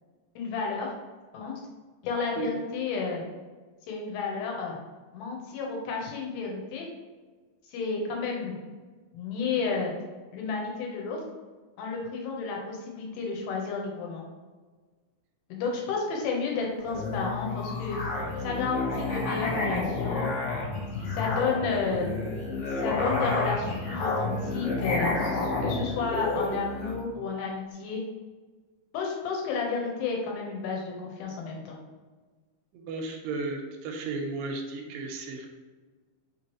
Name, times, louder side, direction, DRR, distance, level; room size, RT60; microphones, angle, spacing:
voice 1, 0.4-0.9 1.3-1.6 2.0-3.2 3.9-4.8 5.1-6.9 7.7-8.6 9.1-9.9 10.3-11.2 11.8-14.2 15.5-18.0 18.4-20.4 21.1-22.1 22.8-28.0 28.9-31.8, left 4 dB, 90° left, 0 dB, 2.7 m, -31 dB
Musical instrument, 16.8-27.0, left 3 dB, 70° left, 1.4 m, -30 dB
voice 2, 32.7-35.5, right 3 dB, 85° right, 3 dB, 2.3 m, -34 dB
5.6 x 3.1 x 2.9 m, 1.4 s
omnidirectional pair, 4.1 m